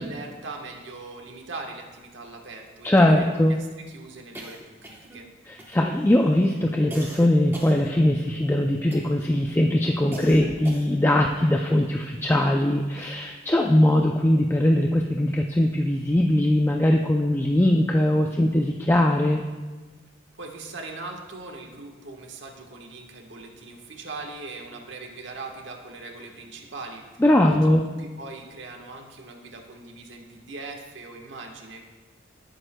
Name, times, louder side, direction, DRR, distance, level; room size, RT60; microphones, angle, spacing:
voice 1, 0.0-5.3 20.3-27.5 27.8-31.8, right 3 dB, 70° right, 2 dB, 1.3 m, -40 dB
voice 2, 2.8-3.6 5.5-19.4 27.2-27.8, left 1 dB, 10° left, 1 dB, 0.4 m, -21 dB
sound 1, 4.3-5.3 5.6-6.1 6.9-8.4 8.9-9.3 10.1-11.1, right 1 dB, 10° right, 1.0 m, -41 dB
17.0 x 9.0 x 2.2 m, 1.3 s
head